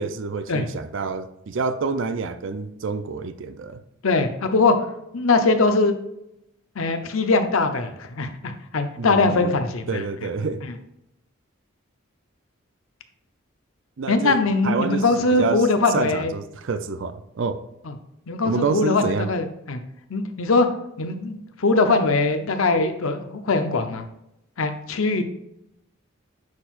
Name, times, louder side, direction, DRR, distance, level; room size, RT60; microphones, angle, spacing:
voice 1, 0.0-3.8 9.0-10.6 14.0-14.4 14.6-17.6 18.4-19.3, right 4 dB, 65° right, 10 dB, 0.4 m, -28 dB
voice 2, 4.0-4.8 5.1-6.0 6.8-10.0 14.1-16.3 17.9-18.0 18.3-19.8 20.1-20.7 21.0-24.0 24.6-25.2, left 3 dB, 85° left, 7 dB, 0.7 m, -21 dB
9.4 x 4.5 x 2.5 m, 0.83 s
head